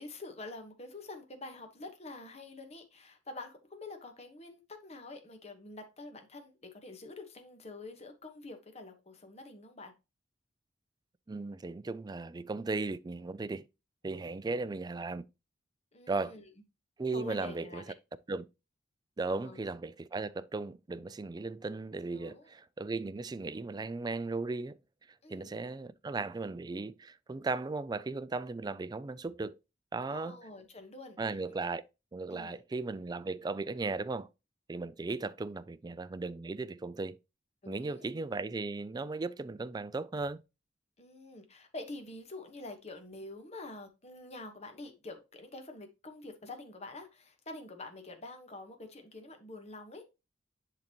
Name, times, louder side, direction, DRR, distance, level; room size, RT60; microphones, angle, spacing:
voice 1, 0.0-9.9 15.9-16.4 17.1-17.9 19.3-19.6 22.1-22.5 25.2-25.6 30.1-31.2 32.3-32.5 37.6-38.1 41.0-50.0, left 2 dB, 35° left, 1.3 m, -47 dB
voice 2, 11.3-13.6 14.0-15.2 16.1-16.3 17.0-17.8 18.3-18.4 19.2-24.8 25.3-29.6 29.9-30.4 31.2-31.8 32.1-34.3 34.7-37.2 37.7-40.4, right 3 dB, 20° right, 0.4 m, -36 dB
10.5 x 4.0 x 3.0 m
head